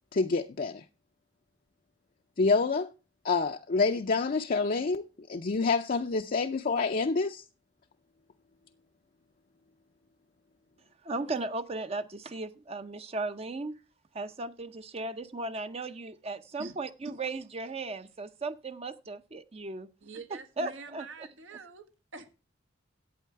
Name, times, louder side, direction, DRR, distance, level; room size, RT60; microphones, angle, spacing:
voice 1, 0.1-0.8 2.4-2.9 3.2-5.0 5.3-7.4, left 4 dB, 45° left, 0.5 m, -27 dB
voice 2, 11.0-13.8 14.1-19.9 20.3-21.3, right 2 dB, 30° right, 0.6 m, -36 dB
voice 3, 20.0-21.8 22.1-22.3, right 4 dB, 85° right, 1.6 m, -45 dB
11.5 x 8.5 x 4.6 m
head